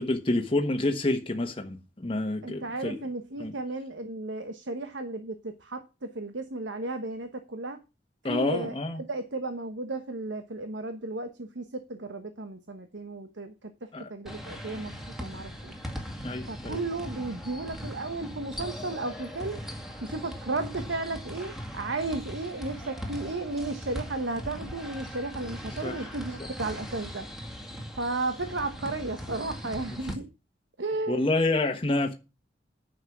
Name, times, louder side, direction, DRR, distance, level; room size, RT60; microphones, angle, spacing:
voice 1, 0.0-1.8 2.0-3.0 3.4-3.5 8.2-9.0 13.9-14.1 16.2-16.8 25.8-26.0 31.1-32.1, left 2 dB, 30° left, 1.2 m, -28 dB
voice 2, 2.4-7.8 8.3-14.9 15.2-15.7 16.5-19.6 20.0-27.3 28.0-30.3 30.8-31.3, right 2 dB, 80° right, 1.1 m, -34 dB
sound 1, 14.3-30.1, equal, ahead, 2.1 m, -39 dB
9.7 x 6.4 x 7.2 m
head